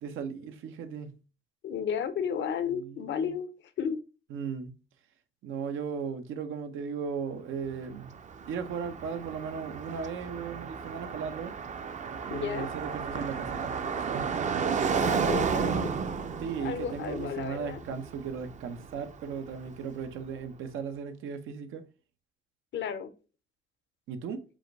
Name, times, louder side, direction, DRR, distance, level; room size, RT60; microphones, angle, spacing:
voice 1, 0.0-1.2 2.7-3.3 4.3-4.8 5.4-8.1 8.5-11.5 12.2-14.5 16.4-21.8 24.1-24.4, right 6 dB, 85° right, 0.7 m, -37 dB
voice 2, 1.6-3.5 3.8-4.0 12.3-12.7 14.9-15.9 16.6-17.8 22.7-23.1, left 7 dB, 70° left, 0.7 m, -33 dB
Car passing by, 7.7-19.7, right 6 dB, 40° right, 0.5 m, -33 dB
4.9 x 2.5 x 3.9 m
cardioid pair, 90°, 20 cm